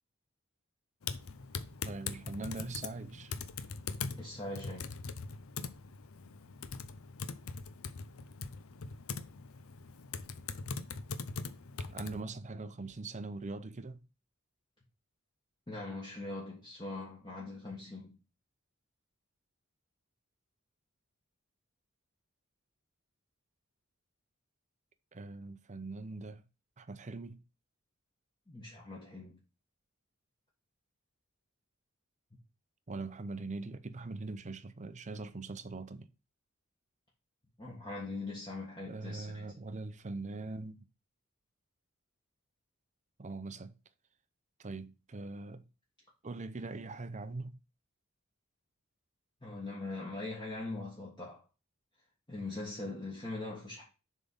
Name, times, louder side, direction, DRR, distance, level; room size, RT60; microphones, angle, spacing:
Typing, 1.0-12.2, left 5 dB, 80° left, 0.6 m, -42 dB
voice 1, 1.8-3.3 11.9-14.0 25.1-26.4 26.8-27.4 32.9-36.1 38.9-40.8 43.2-43.7 44.6-45.7 46.2-47.5, right 3 dB, 35° right, 0.6 m, -42 dB
voice 2, 4.1-4.9 15.7-18.2 28.5-29.4 37.6-39.5 49.4-51.4 52.3-53.8, left 2 dB, 20° left, 1.6 m, -41 dB
7.2 x 3.7 x 5.5 m
head